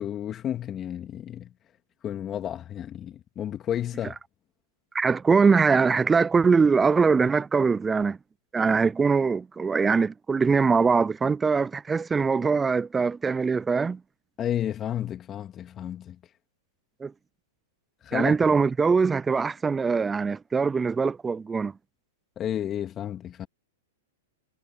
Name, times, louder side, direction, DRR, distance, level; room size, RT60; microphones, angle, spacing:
voice 1, 0.0-1.5 2.0-4.2 14.4-16.2 18.0-18.4 22.4-23.5, left 10 dB, 25° left, 2.3 m, -31 dB
voice 2, 4.9-8.2 8.5-14.0 17.0-17.1 18.1-21.7, right 5 dB, 15° right, 0.4 m, -22 dB
hypercardioid pair, 115°, 0 cm